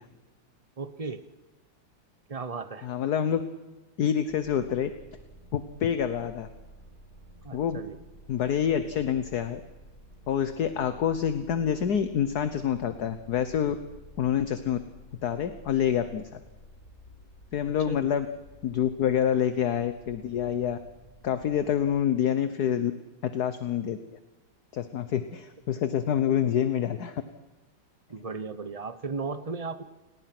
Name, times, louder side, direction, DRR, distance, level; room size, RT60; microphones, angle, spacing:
voice 1, 0.8-1.2 2.3-2.9 7.4-8.0 17.9-18.1 28.1-29.8, right 4 dB, 55° right, 11 dB, 0.4 m, -35 dB
voice 2, 2.8-3.4 4.0-4.9 5.5-6.5 7.5-7.8 8.3-9.6 10.3-13.7 14.2-14.8 15.2-16.4 17.5-18.3 18.6-20.8 21.2-22.9 23.2-24.0 24.7-27.2, left 9 dB, 55° left, 10 dB, 1.4 m, -27 dB
sound 1, 4.3-22.0, right 1 dB, 40° left, 6.2 m, -52 dB
28.5 x 19.5 x 6.0 m, 1.1 s
omnidirectional pair, 2.2 m